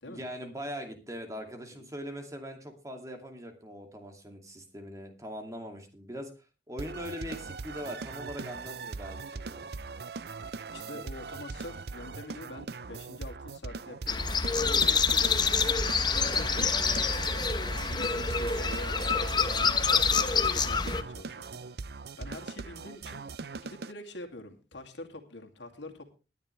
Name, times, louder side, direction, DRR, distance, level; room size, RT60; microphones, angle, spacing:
voice 1, 0.0-6.3 6.7-9.7, equal, 20° right, 5 dB, 2.4 m, -41 dB
sound 1, 6.8-23.9, right 4 dB, 60° right, 0.5 m, -40 dB
voice 2, 10.7-15.4 16.1-17.3 17.9-21.7 22.2-23.2 23.6-26.2, left 2 dB, 90° left, 3 dB, 2.5 m, -45 dB
sound 2, 14.1-21.0, left 5 dB, 25° left, 0.8 m, -27 dB
19.0 x 10.0 x 3.3 m, 0.31 s
head